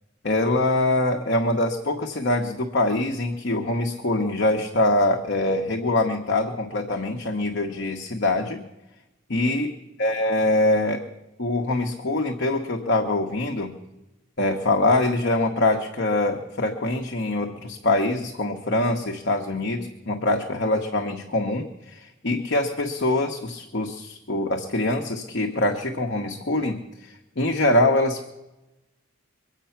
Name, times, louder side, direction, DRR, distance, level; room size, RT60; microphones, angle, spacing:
voice 1, 0.2-8.6 9.3-9.7 10.0-11.0 11.4-13.8 14.4-28.3, left 2 dB, 60° left, 2 dB, 1.0 m, -24 dB
23.0 x 8.3 x 5.8 m, 1.0 s
head